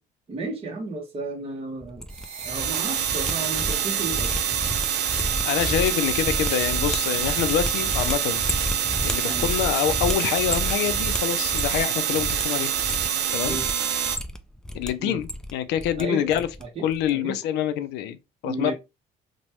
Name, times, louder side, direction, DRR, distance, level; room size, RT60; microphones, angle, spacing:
voice 1, 0.3-2.0 2.4-4.4 9.3-9.5 13.5-13.6 15.0-15.2 16.0-17.4 18.4-18.7, right 3 dB, 35° right, 1.0 m, -33 dB
sound 1, 1.8-2.7 3.0-11.9 12.2-12.4 12.7-13.7 14.0-14.9 15.1-16.0 16.3-16.6 16.9-17.1, left 1 dB, 5° left, 0.3 m, -32 dB
sound 2, 2.1-14.2, right 8 dB, 80° right, 0.6 m, -26 dB
voice 2, 5.4-8.5 9.0-12.7 13.3-13.6 14.7-16.5 16.8-18.2 18.4-18.7, left 11 dB, 85° left, 0.4 m, -26 dB
3.0 x 2.2 x 2.9 m
cardioid pair, 110°, 17 cm